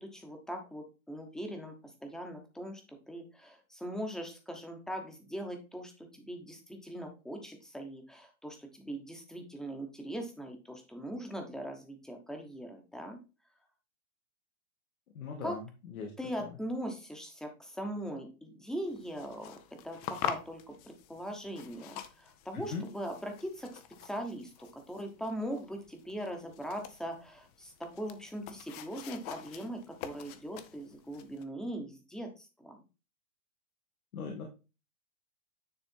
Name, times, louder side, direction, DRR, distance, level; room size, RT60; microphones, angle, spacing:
voice 1, 0.0-1.7 2.0-13.2 15.4-15.6 16.2-19.6 19.8-32.8, equal, ahead, 4 dB, 1.0 m, -40 dB
voice 2, 15.1-16.1 16.4-16.5 22.5-22.9 34.1-34.5, left 5 dB, 80° left, 2 dB, 1.9 m, -39 dB
sound 1, 18.9-31.4, left 10 dB, 30° left, 0.6 m, -45 dB
9.8 x 3.5 x 4.5 m, 0.30 s
hypercardioid pair, 150°, 42 cm